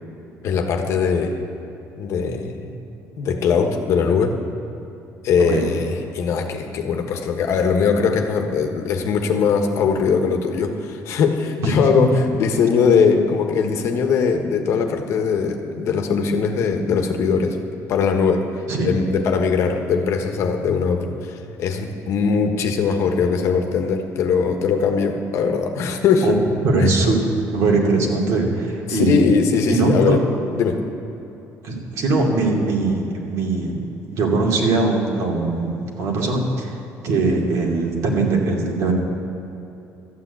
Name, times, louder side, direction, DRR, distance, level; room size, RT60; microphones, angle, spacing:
voice 1, 0.4-1.4 2.0-2.6 3.2-4.4 5.2-17.6 17.9-18.5 18.8-26.4 26.8-26.9 28.9-30.2 30.5-30.8, left 5 dB, 55° left, 5 dB, 1.3 m, -20 dB
voice 2, 11.6-12.1 18.7-18.9 26.2-27.2 27.5-29.2 29.7-30.2 31.6-33.8 34.1-36.7 37.0-38.9, right 3 dB, 65° right, -1 dB, 2.6 m, -21 dB
13.5 x 9.0 x 8.3 m, 2.9 s
cardioid pair, 150°, 6 cm